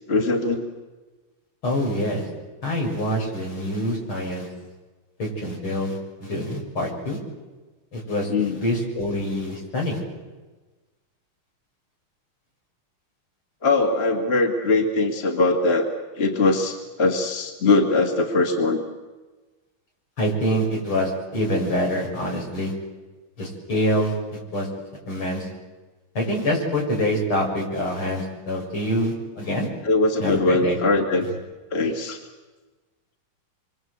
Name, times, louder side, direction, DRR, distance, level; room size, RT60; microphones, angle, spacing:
voice 1, 0.1-0.7 8.3-8.6 13.6-15.9 16.2-18.8 29.8-31.3 31.7-32.2, left 3 dB, 30° left, 3 dB, 2.4 m, -21 dB
voice 2, 1.6-2.3 2.6-4.5 5.2-7.2 7.9-10.0 20.2-22.7 23.4-24.1 24.5-24.7 25.1-25.5 26.2-29.7 30.2-30.8, equal, 75° left, -1 dB, 7.4 m, -25 dB
27.5 x 24.0 x 8.1 m, 1.2 s
omnidirectional pair, 2.3 m